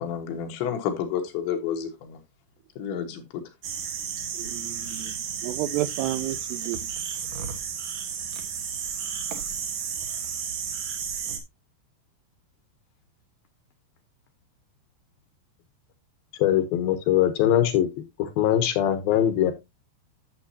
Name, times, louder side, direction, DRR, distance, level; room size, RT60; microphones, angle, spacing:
voice 1, 0.0-2.2 2.8-3.4, left 8 dB, 90° left, 3.9 m, -30 dB
sound 1, 3.6-11.4, right 7 dB, 60° right, 1.9 m, -33 dB
voice 2, 4.3-5.1 5.4-6.8, right 14 dB, 80° right, 2.5 m, -31 dB
voice 3, 16.4-19.5, left 11 dB, 70° left, 2.4 m, -22 dB
11.0 x 7.4 x 2.8 m
omnidirectional pair, 5.1 m